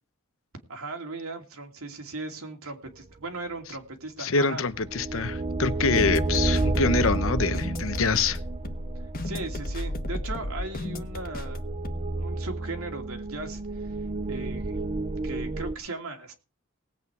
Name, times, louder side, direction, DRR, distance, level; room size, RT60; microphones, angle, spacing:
voice 1, 0.7-4.6 9.2-11.7 12.2-13.9 14.3-14.9 15.2-16.3, right 2 dB, 85° right, 2.7 m, -37 dB
voice 2, 4.2-8.4, left 4 dB, 65° left, 0.9 m, -25 dB
sound 1, 4.6-15.7, right 2 dB, 30° right, 0.6 m, -31 dB
sound 2, 5.9-12.3, left 1 dB, 45° left, 1.3 m, -34 dB
19.0 x 8.5 x 4.8 m
head